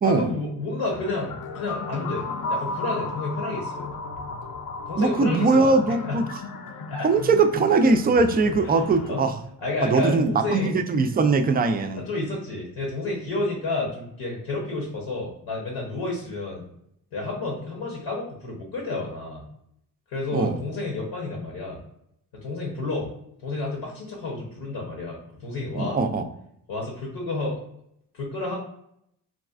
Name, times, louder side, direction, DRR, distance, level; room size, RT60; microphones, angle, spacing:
voice 1, 0.0-3.9 4.9-5.7 6.1-6.2 6.9-7.1 8.6-9.2 9.6-10.7 12.1-16.6 17.1-19.5 20.1-21.8 22.3-23.1 23.4-26.0 26.7-27.6 28.1-28.5, left 2 dB, 75° left, -2 dB, 1.0 m, -30 dB
sound 1, 0.8-9.2, left 3 dB, 45° left, 0.6 m, -34 dB
voice 2, 5.0-6.3 7.0-9.4 9.8-12.0 20.3-20.6 25.7-26.3, right 3 dB, 25° right, 7 dB, 0.3 m, -21 dB
4.0 x 2.3 x 2.4 m, 0.75 s
cardioid pair, 65°, 43 cm